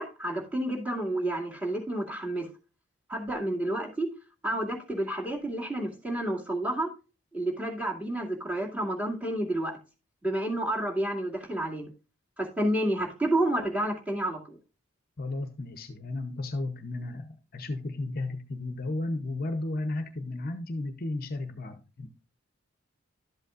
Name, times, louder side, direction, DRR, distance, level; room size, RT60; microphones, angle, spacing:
voice 1, 0.0-2.5 3.1-4.1 4.4-6.9 7.3-9.7 10.2-11.9 12.4-14.6, right 1 dB, 5° right, -1 dB, 2.3 m, -30 dB
voice 2, 15.2-22.1, left 2 dB, 45° left, 9 dB, 0.8 m, -34 dB
12.0 x 8.0 x 2.5 m, 0.32 s
head